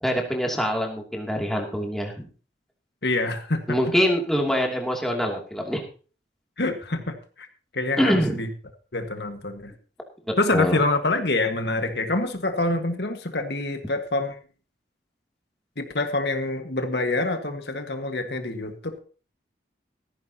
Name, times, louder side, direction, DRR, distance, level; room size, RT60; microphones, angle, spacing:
voice 1, 0.0-2.3 3.7-5.8 8.0-8.4 10.3-10.8, equal, ahead, 0 dB, 2.7 m, -24 dB
voice 2, 3.0-3.8 6.6-7.5 7.7-8.5 8.9-9.7 10.4-14.4 15.8-19.0, left 2 dB, 65° left, 6 dB, 1.6 m, -26 dB
16.5 x 14.0 x 2.9 m, 0.37 s
head